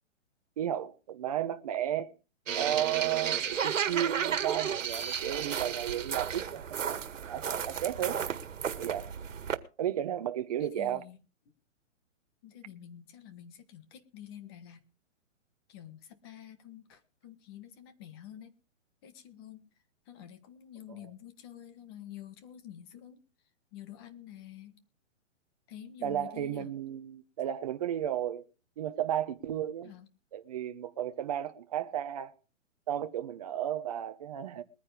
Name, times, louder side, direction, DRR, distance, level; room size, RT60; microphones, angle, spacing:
voice 1, 0.6-2.1 2.5-6.8 7.3-8.3 8.8-9.1 9.8-11.0 26.0-28.4 28.8-29.9 30.3-32.3 32.9-34.6, right 11 dB, 30° right, 1.0 m, -33 dB
sound 1, 2.5-9.6, right 8 dB, 75° right, 1.9 m, -33 dB
voice 2, 10.6-11.2 12.4-14.8 15.7-18.6 19.0-19.7 20.0-23.2 23.7-24.8 25.7-26.7 29.8-30.1, left 11 dB, 20° left, 1.4 m, -48 dB
22.0 x 9.7 x 3.4 m
hypercardioid pair, 170°, 38 cm